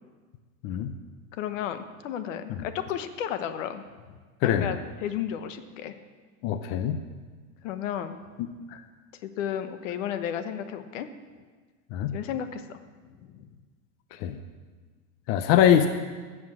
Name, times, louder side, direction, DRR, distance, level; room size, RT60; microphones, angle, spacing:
voice 1, 1.3-3.8 4.4-5.9 7.6-8.2 9.2-11.1 12.1-12.8 13.3-13.5, left 9 dB, 70° left, 10 dB, 1.1 m, -33 dB
voice 2, 4.4-4.8 6.4-7.0 8.7-8.8 11.9-12.2 14.2-14.4 15.3-15.9, left 9 dB, 40° left, 9 dB, 0.6 m, -23 dB
12.5 x 7.2 x 7.5 m, 1.4 s
supercardioid pair, 155°, 39 cm